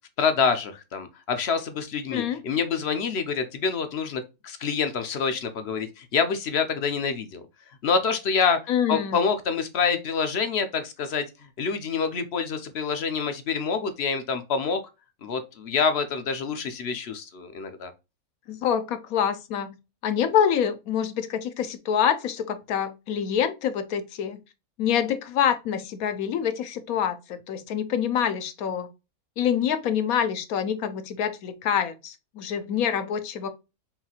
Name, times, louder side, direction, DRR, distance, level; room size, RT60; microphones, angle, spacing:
voice 1, 0.2-7.4 7.8-8.6 8.9-11.3 11.6-14.8 15.2-17.9, left 5 dB, 55° left, 0.8 m, -26 dB
voice 2, 2.1-2.4 8.7-9.2 18.5-19.7 20.0-24.4 24.8-28.9 29.4-33.5, left 8 dB, 75° left, 1.1 m, -26 dB
5.7 x 2.7 x 2.8 m
omnidirectional pair, 1.6 m